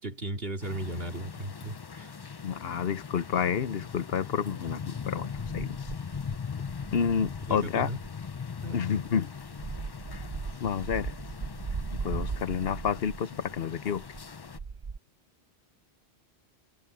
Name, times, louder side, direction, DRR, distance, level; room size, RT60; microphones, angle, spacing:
voice 1, 0.0-2.2 7.2-8.0 8.6-8.9, right 1 dB, 60° right, 3.0 m, -36 dB
sound 1, 0.6-14.6, left 6 dB, 35° left, 0.4 m, -40 dB
voice 2, 2.4-5.8 6.9-7.9 8.7-9.3 10.6-11.1 12.0-14.0, left 7 dB, 65° left, 1.0 m, -29 dB
sound 2, 5.4-8.4 8.9-13.6 13.9-15.0, right 5 dB, 35° right, 0.6 m, -38 dB
omnidirectional pair, 1.1 m